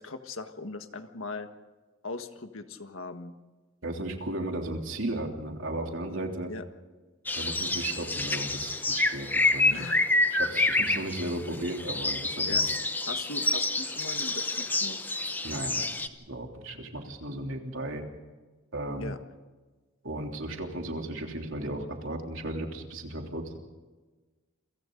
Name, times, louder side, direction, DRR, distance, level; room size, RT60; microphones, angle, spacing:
voice 1, 0.0-1.5 2.0-3.3 6.5-6.6 9.7-10.1 12.5-12.6 13.1-15.0 19.0-19.2, left 3 dB, 80° left, 7 dB, 1.6 m, -39 dB
voice 2, 3.8-6.5 7.3-9.9 10.3-12.6 15.4-15.9 16.3-18.0 18.7-19.1 20.0-23.6, right 1 dB, 70° right, 2 dB, 3.3 m, -35 dB
sound 1, 7.3-16.1, left 2 dB, 10° left, 0.8 m, -28 dB
29.0 x 24.0 x 4.0 m, 1.3 s
head